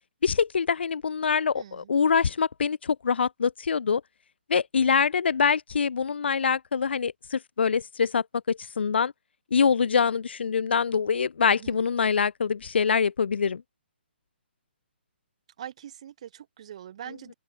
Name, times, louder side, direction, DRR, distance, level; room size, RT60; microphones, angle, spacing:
voice 1, 0.2-4.0 4.5-9.1 9.5-13.6, left 6 dB, 70° left, 1.0 m, -24 dB
voice 2, 1.5-2.0 11.5-11.8 15.6-17.3, right 10 dB, 35° right, 3.2 m, -43 dB
open air
hypercardioid pair, 175°, 6 cm